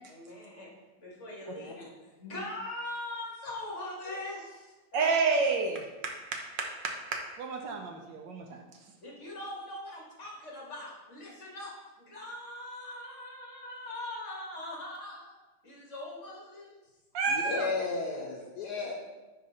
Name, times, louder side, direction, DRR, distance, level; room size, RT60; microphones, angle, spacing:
voice 1, 0.1-0.7 1.0-5.2 9.0-15.4 15.6-16.7, left 1 dB, 35° left, -3 dB, 1.9 m, -41 dB
voice 2, 4.9-8.9 17.1-17.7, right 4 dB, 70° right, 2 dB, 1.3 m, -31 dB
voice 3, 17.5-18.9, left 4 dB, 65° left, -1 dB, 1.2 m, -33 dB
9.9 x 3.8 x 4.1 m, 1.2 s
omnidirectional pair, 2.2 m